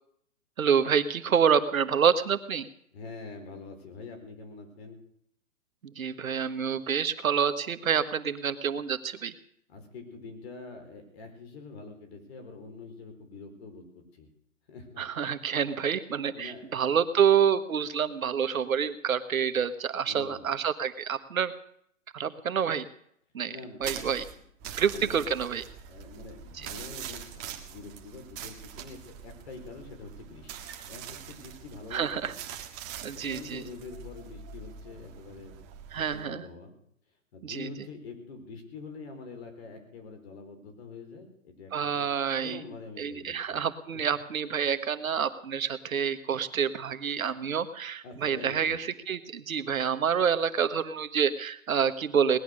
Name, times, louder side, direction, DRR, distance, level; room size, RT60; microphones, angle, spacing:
voice 1, 0.6-2.7 5.8-9.3 15.0-21.5 22.1-22.8 23.3-23.5 23.8-24.2 24.8-25.6 26.5-26.7 31.9-32.3 33.0-33.6 35.9-36.5 37.4-37.7 41.7-42.6 43.0-52.4, right 7 dB, 80° right, 11 dB, 1.3 m, -27 dB
voice 2, 2.9-5.0 9.7-14.3 14.7-15.3 16.3-16.8 20.1-20.5 23.5-24.2 24.6-25.3 25.9-30.5 30.9-32.3 33.1-35.6 35.9-36.7 37.3-42.1 42.4-43.6 48.0-48.7, left 4 dB, 50° left, 6 dB, 4.3 m, -45 dB
sound 1, 23.8-36.3, right 8 dB, 25° right, 1.6 m, -43 dB
19.0 x 11.0 x 6.4 m, 0.70 s
hypercardioid pair, 140°, 40 cm